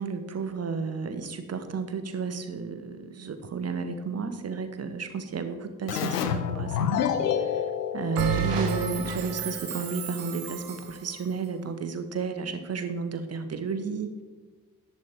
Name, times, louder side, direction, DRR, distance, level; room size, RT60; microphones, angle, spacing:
voice 1, 0.0-6.9 7.3-7.6 7.9-14.2, right 5 dB, 30° right, 9 dB, 1.3 m, -32 dB
Keyboard (musical), 5.9-9.3, left 8 dB, 85° left, 0.7 m, -29 dB
Bell, 8.2-10.9, right 5 dB, 80° right, 1.1 m, -31 dB
10.5 x 8.7 x 4.5 m, 1.3 s
figure-of-eight pair, 45°, 47 cm